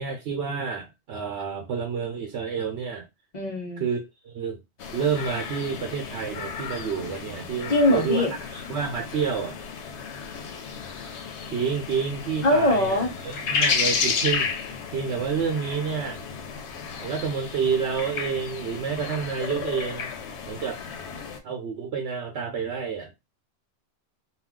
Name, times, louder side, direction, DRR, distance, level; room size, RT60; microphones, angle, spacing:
voice 1, 0.0-3.0 3.8-4.6 4.9-9.6 11.5-14.5 14.9-16.2 17.0-20.1 20.5-20.8 21.4-23.1, right 6 dB, 85° right, 0.9 m, -29 dB
voice 2, 3.3-3.8 7.7-8.3 12.4-13.1, left 1 dB, 45° left, 0.9 m, -21 dB
sound 1, 4.8-21.4, left 5 dB, 90° left, 0.9 m, -32 dB
2.4 x 2.3 x 3.6 m
omnidirectional pair, 1.1 m